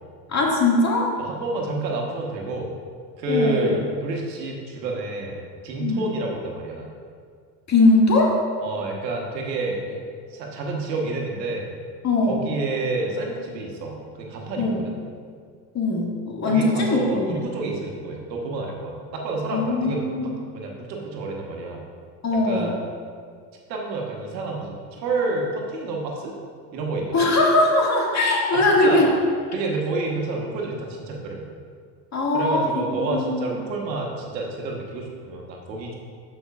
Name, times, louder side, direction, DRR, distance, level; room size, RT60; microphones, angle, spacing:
voice 1, 0.3-1.1 3.3-3.7 5.8-6.0 7.7-8.3 12.0-12.4 14.6-14.8 15.7-17.4 19.5-20.3 22.2-22.7 27.1-29.1 32.1-33.4, left 2 dB, 35° left, -2 dB, 2.0 m, -20 dB
voice 2, 1.2-2.7 3.2-6.9 8.6-10.0 10.3-11.7 12.3-14.9 16.5-21.8 22.4-22.7 23.7-26.3 26.7-27.2 28.5-29.1 29.5-31.4 32.3-35.9, right 2 dB, 90° right, 0 dB, 1.3 m, -29 dB
12.5 x 5.4 x 2.4 m, 2.1 s
hypercardioid pair, 85°, 49 cm